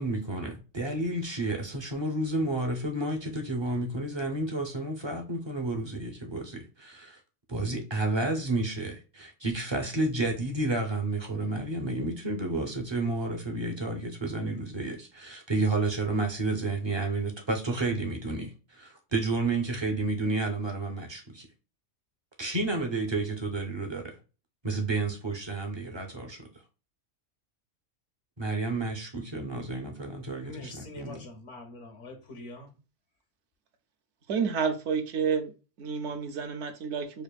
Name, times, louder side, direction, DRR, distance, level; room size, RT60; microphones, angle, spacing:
voice 1, 0.0-7.2 7.5-21.5 22.4-24.2 24.6-26.4 28.4-31.2, right 2 dB, 35° right, 0.4 m, -31 dB
voice 2, 30.4-32.7, left 2 dB, 75° left, 1.0 m, -44 dB
voice 3, 34.3-35.5 35.8-37.2, right 6 dB, 70° right, 0.8 m, -30 dB
5.1 x 2.4 x 2.2 m
omnidirectional pair, 1.3 m